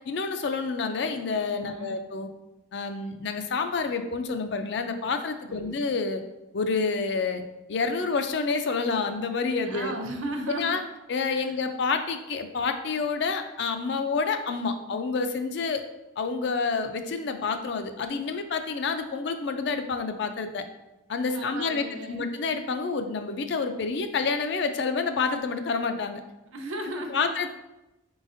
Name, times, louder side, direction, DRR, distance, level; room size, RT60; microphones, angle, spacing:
voice 1, 0.1-2.3 2.7-6.2 6.5-7.4 7.7-9.9 10.5-10.8 11.1-15.8 16.2-20.7 21.1-26.2 27.1-27.5, left 4 dB, 60° left, 8 dB, 0.4 m, -28 dB
voice 2, 1.6-2.0 5.5-5.8 9.6-10.9 11.4-11.6 21.3-22.3 26.5-27.3, right 1 dB, 85° right, 3 dB, 0.6 m, -35 dB
4.1 x 3.9 x 2.5 m, 0.96 s
head